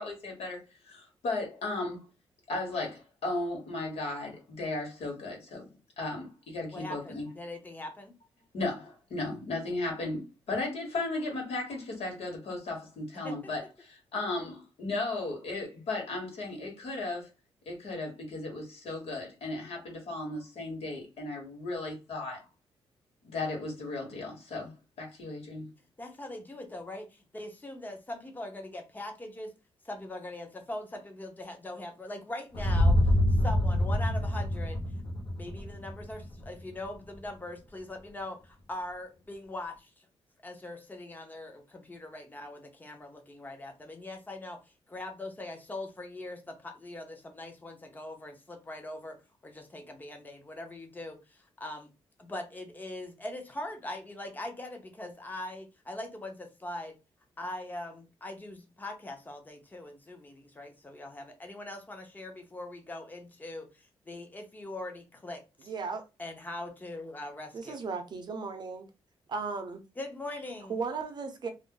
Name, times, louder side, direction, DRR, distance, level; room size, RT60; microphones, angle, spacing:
voice 1, 0.0-2.1 2.5-5.7 6.0-7.3 8.5-17.3 17.7-22.4 23.2-25.7, left 2 dB, 85° left, 1.2 m, -35 dB
voice 2, 6.7-8.1 13.2-13.4 26.0-29.5 29.8-33.0 33.4-34.8 35.4-40.1 40.4-44.6 44.9-51.9 52.2-57.0 57.4-65.7 66.2-67.8 70.0-70.8, left 1 dB, 20° left, 0.7 m, -41 dB
sound 1, 32.5-36.6, left 1 dB, 60° left, 0.8 m, -26 dB
voice 3, 65.6-66.0 67.5-68.9 69.3-69.8 70.7-71.5, right 4 dB, 45° right, 0.6 m, -35 dB
2.5 x 2.0 x 3.7 m
wide cardioid pair, 130°, 10 cm